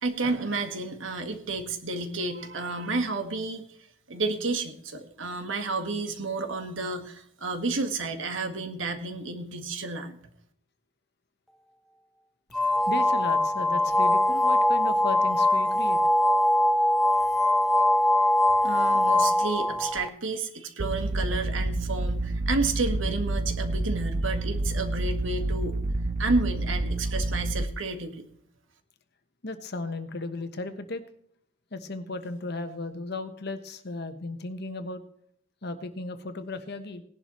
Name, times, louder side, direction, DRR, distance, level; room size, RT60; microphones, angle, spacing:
voice 1, 0.0-3.8 4.1-10.2 18.6-25.7 26.2-28.2, right 3 dB, 75° right, 6 dB, 1.7 m, -31 dB
voice 2, 12.5-16.0 29.4-31.0 31.7-35.0 35.6-37.0, left 2 dB, 55° left, 9 dB, 1.2 m, -35 dB
sound 1, 12.5-20.1, left 1 dB, ahead, 0.3 m, -22 dB
sound 2, 20.8-27.7, right 2 dB, 40° right, 0.7 m, -29 dB
18.5 x 11.0 x 3.1 m, 0.69 s
head